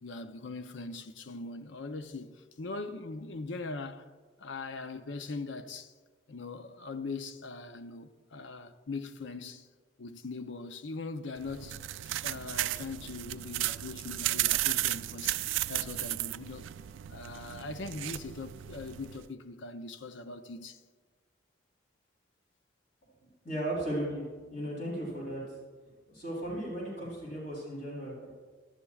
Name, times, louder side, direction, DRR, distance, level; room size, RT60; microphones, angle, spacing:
voice 1, 0.0-4.1 4.4-5.9 6.3-9.7 10.0-11.8 12.0-15.4 15.7-16.7 17.1-20.8, left 3 dB, 80° left, 0.6 m, -41 dB
sound 1, 11.4-19.3, right 15 dB, 85° right, 0.3 m, -34 dB
voice 2, 23.4-24.2 24.5-25.4 26.1-28.4, right 1 dB, 45° left, 3.7 m, -36 dB
17.0 x 11.5 x 2.4 m
head